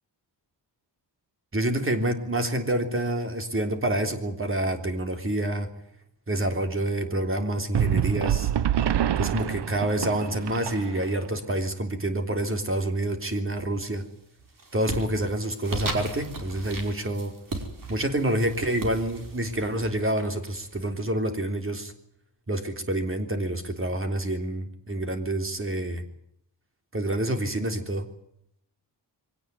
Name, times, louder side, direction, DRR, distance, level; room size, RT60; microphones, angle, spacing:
voice 1, 1.5-5.7 6.3-8.5 9.2-14.1 14.7-17.3 17.9-21.9 22.5-26.0 26.9-28.1, right 1 dB, 30° right, 7 dB, 3.5 m, -27 dB
sound 1, 7.7-11.3, right 10 dB, 70° right, 0.9 m, -26 dB
sound 2, 13.5-14.0 14.4-21.0, right 2 dB, 50° right, 5.3 m, -37 dB
23.5 x 18.0 x 9.5 m, 0.72 s
wide cardioid pair, 150°, 43 cm